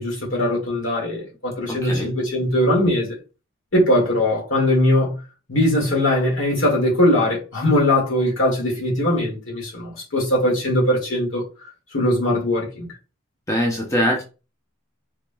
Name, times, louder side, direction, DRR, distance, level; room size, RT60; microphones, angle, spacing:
voice 1, 0.0-3.1 3.7-5.2 5.5-12.9, left 1 dB, 65° left, 2.0 m, -20 dB
voice 2, 13.5-14.2, equal, 15° left, 0.7 m, -22 dB
4.7 x 3.2 x 2.2 m
head